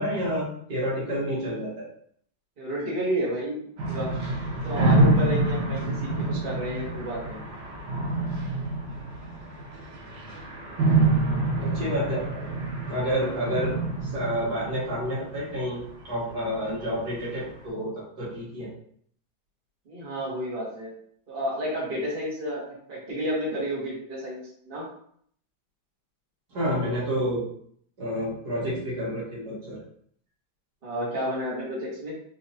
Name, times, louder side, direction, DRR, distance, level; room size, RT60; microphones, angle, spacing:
voice 1, 0.0-1.8 11.6-12.2 12.9-13.7 14.0-17.9 18.2-18.7 26.5-27.4 28.0-29.8, equal, 55° right, -7 dB, 1.7 m, -29 dB
voice 2, 2.6-3.6 3.9-4.1 4.6-7.4 11.2-11.5 12.4-12.5 13.3-13.7 19.9-20.9 21.3-24.9 30.8-32.1, equal, 30° right, -6 dB, 1.1 m, -31 dB
sound 1, 3.8-15.9, right 2 dB, 80° right, 1.6 m, -27 dB
4.3 x 2.7 x 2.7 m, 0.63 s
omnidirectional pair, 2.3 m